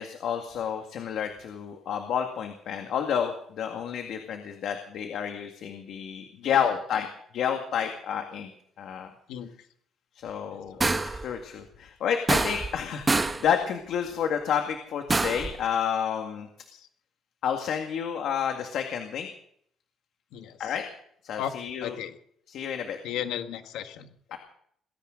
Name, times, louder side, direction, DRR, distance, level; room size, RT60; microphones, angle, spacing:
voice 1, 0.0-7.1 7.3-8.5 8.8-9.1 10.1-10.8 11.0-16.5 17.4-19.3 20.6-20.8 21.2-22.0 22.5-23.0 24.3-24.4, left 8 dB, 65° left, 4 dB, 2.0 m, -30 dB
voice 2, 10.5-10.9 16.7-16.9 20.3-20.7 21.4-21.5 21.8-22.2 23.0-24.4, left 10 dB, 90° left, 7 dB, 1.8 m, -36 dB
sound 1, 10.8-11.3 12.3-12.8 13.1-13.5 15.1-15.5, right 3 dB, 15° right, 1.0 m, -25 dB
20.5 x 17.0 x 3.9 m, 0.64 s
cardioid pair, 140°, 0 cm